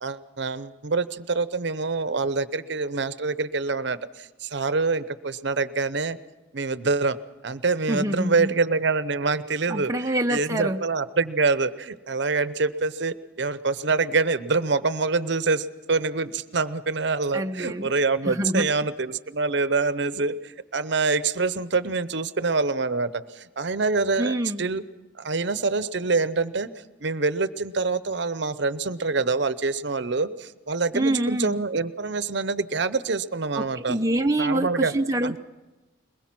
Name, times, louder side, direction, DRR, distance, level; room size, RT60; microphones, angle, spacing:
voice 1, 0.0-6.2 6.5-7.2 7.4-24.8 25.2-26.7 27.0-34.0 34.4-34.9 35.2-35.4, right 4 dB, 60° right, 15 dB, 0.7 m, -26 dB
voice 2, 7.9-8.5 9.7-10.8 17.3-17.9 18.2-18.7 24.2-24.7 30.9-31.6 33.6-35.4, right 1 dB, 15° right, 3 dB, 0.6 m, -26 dB
22.0 x 21.0 x 6.0 m, 1.2 s
head